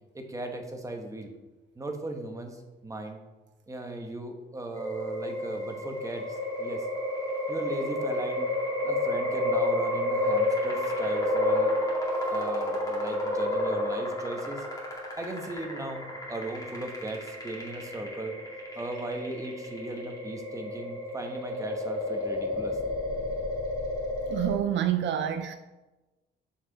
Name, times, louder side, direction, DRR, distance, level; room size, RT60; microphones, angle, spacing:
voice 1, 0.1-1.3 1.8-3.2 3.7-6.9 7.5-8.5 8.8-11.7 12.3-14.6 15.2-18.3 18.7-22.8, right 2 dB, 15° right, 1.0 m, -37 dB
sound 1, 4.7-24.6, left 1 dB, 15° left, 2.1 m, -30 dB
voice 2, 24.3-25.6, right 10 dB, 65° right, 0.4 m, -27 dB
6.1 x 4.7 x 3.9 m
cardioid pair, 90°, 20 cm